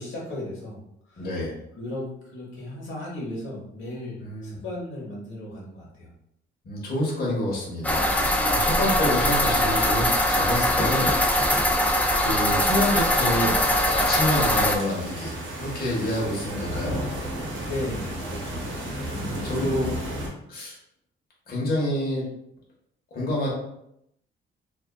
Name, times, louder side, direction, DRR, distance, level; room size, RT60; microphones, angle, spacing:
voice 1, 0.0-1.3 1.7-6.1 17.6-18.7, left 1 dB, 75° left, -4 dB, 1.0 m, -36 dB
voice 2, 1.2-1.6 4.2-4.6 6.6-8.0 8.5-11.5 12.2-13.6 13.9-17.0 19.1-19.9 20.5-20.8 21.5-22.3 23.1-23.5, left 1 dB, 50° left, -4 dB, 0.9 m, -28 dB
sound 1, 7.8-14.8, left 1 dB, 5° left, 0.3 m, -22 dB
sound 2, 13.8-20.3, right 1 dB, 70° right, 0.9 m, -33 dB
2.5 x 2.3 x 2.3 m, 0.78 s
cardioid pair, 90°, 20 cm